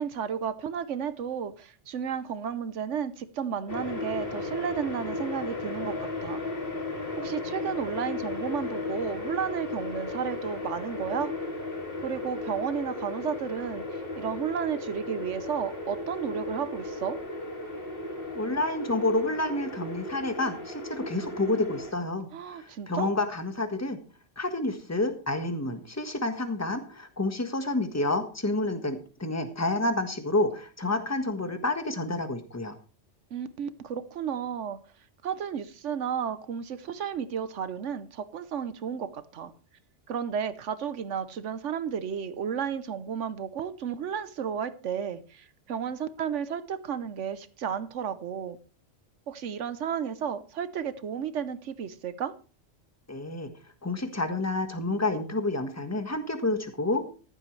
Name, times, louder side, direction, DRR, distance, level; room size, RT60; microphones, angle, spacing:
voice 1, 0.0-6.0 6.2-6.4 7.2-11.3 12.0-17.2 22.3-23.1 33.3-34.8 35.2-39.5 40.1-48.6 49.3-52.3, right 7 dB, 85° right, 1.2 m, -33 dB
sound 1, 3.7-21.9, left 2 dB, 50° left, 2.7 m, -35 dB
voice 2, 18.3-24.0 24.4-32.7 53.1-53.5 53.8-57.0, left 2 dB, 15° left, 1.4 m, -29 dB
14.5 x 11.5 x 3.2 m
omnidirectional pair, 1.2 m